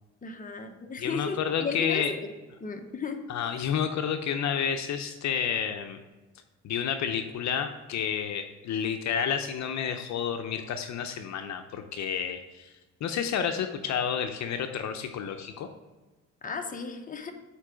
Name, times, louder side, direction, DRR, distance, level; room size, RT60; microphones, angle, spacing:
voice 1, 0.2-2.2 2.6-3.2 16.4-17.3, left 5 dB, 25° left, 5 dB, 1.0 m, -35 dB
voice 2, 1.0-2.1 3.3-6.0 6.6-12.7 13.0-15.7, left 7 dB, 65° left, 7 dB, 0.6 m, -30 dB
7.2 x 4.6 x 5.0 m, 1.2 s
cardioid pair, 90°, 30 cm